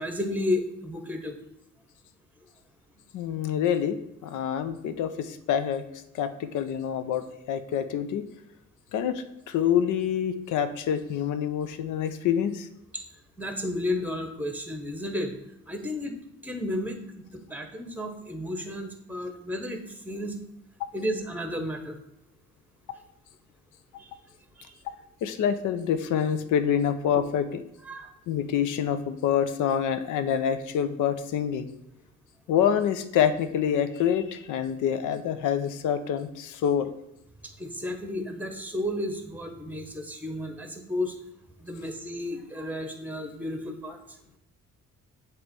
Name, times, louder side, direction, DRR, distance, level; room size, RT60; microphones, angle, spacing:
voice 1, 0.0-1.3 13.4-15.3 15.7-16.2 16.4-17.0 17.3-20.4 20.9-22.0 24.0-24.1 24.6-24.7 27.8-28.1 37.6-41.1 41.6-44.0, left 1 dB, 5° right, 5 dB, 1.1 m, -32 dB
voice 2, 3.1-4.0 4.2-5.8 6.1-8.2 8.9-12.7 25.2-27.6 28.3-31.7 32.5-36.9, left 8 dB, 80° left, 11 dB, 0.6 m, -26 dB
7.8 x 3.1 x 5.3 m, 0.80 s
cardioid pair, 90°, 30 cm